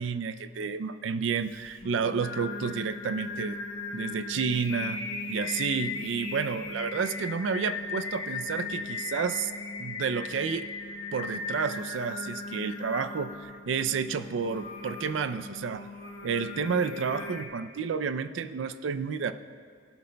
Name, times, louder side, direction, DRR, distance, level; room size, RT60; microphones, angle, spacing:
voice 1, 0.0-3.6 3.9-5.0 5.3-9.5 9.8-10.7 11.1-15.9 16.2-19.3, right 6 dB, 75° right, 13 dB, 0.4 m, -30 dB
Singing, 1.5-17.4, left 3 dB, 90° left, 1.2 m, -37 dB
16.5 x 11.5 x 2.2 m, 2.2 s
head